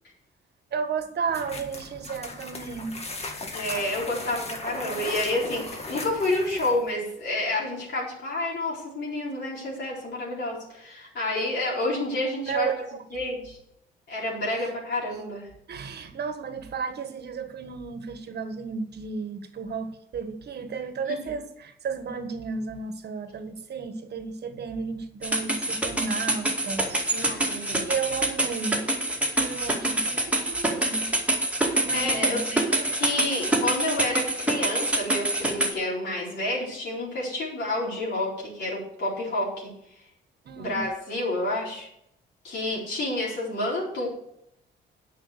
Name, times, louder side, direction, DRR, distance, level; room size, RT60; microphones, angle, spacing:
voice 1, 0.7-3.0 12.5-13.0 14.6-14.7 15.7-28.9 29.3-31.1 31.8-32.6 40.4-40.8, right 5 dB, 55° right, 9 dB, 1.5 m, -33 dB
sound 1, 1.3-6.9, left 2 dB, 30° left, 1.9 m, -37 dB
voice 2, 3.5-12.7 13.1-13.6 14.1-15.5 21.2-21.4 27.1-27.8 31.9-32.6 32.9-39.7 40.6-41.9 42.4-44.1, left 1 dB, 60° left, -5 dB, 4.4 m, -29 dB
sound 2, 25.2-35.7, right 1 dB, 5° right, 2.3 m, -26 dB
8.7 x 6.2 x 8.1 m, 0.76 s
cardioid pair, 90°, 20 cm